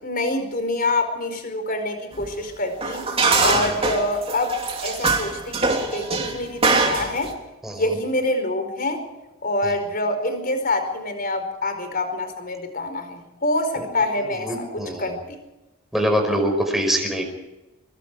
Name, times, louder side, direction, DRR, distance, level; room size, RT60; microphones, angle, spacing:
voice 1, 0.0-3.1 3.4-4.6 4.8-7.3 7.7-9.0 9.4-15.4, left 2 dB, 40° left, 7 dB, 4.9 m, -26 dB
sound 1, 2.2-2.3 2.8-7.3, right 3 dB, 25° right, 3.2 m, -22 dB
voice 2, 7.6-8.0 13.8-13.9 14.4-15.1 15.9-17.2, equal, ahead, 2 dB, 5.0 m, -24 dB
24.0 x 23.5 x 4.9 m, 1.0 s
head